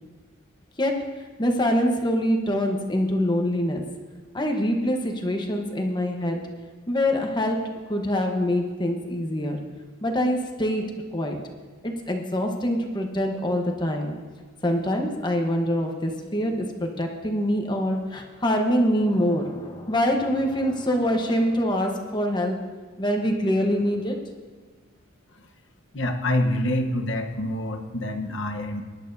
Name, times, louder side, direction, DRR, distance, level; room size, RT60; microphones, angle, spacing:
voice 1, 0.8-1.1 1.4-3.8 4.3-6.4 6.9-9.6 10.0-10.9 11.1-11.4 11.8-14.2 14.6-22.6 23.0-24.2, equal, 20° left, 2 dB, 1.1 m, -24 dB
voice 2, 25.9-28.8, left 1 dB, 65° left, 5 dB, 1.1 m, -26 dB
21.0 x 11.0 x 2.7 m, 1.4 s
head